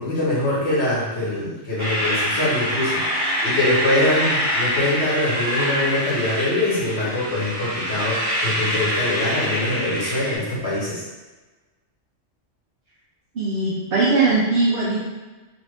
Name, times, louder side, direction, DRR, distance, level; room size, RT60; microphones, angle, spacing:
voice 1, 0.0-11.0, left 1 dB, 60° left, -8 dB, 1.3 m, -23 dB
sound 1, 1.8-10.4, equal, 45° right, 1.3 m, -25 dB
voice 2, 13.4-15.0, right 3 dB, 60° right, -7 dB, 0.7 m, -20 dB
3.0 x 2.4 x 3.2 m, 1.2 s
omnidirectional pair, 1.3 m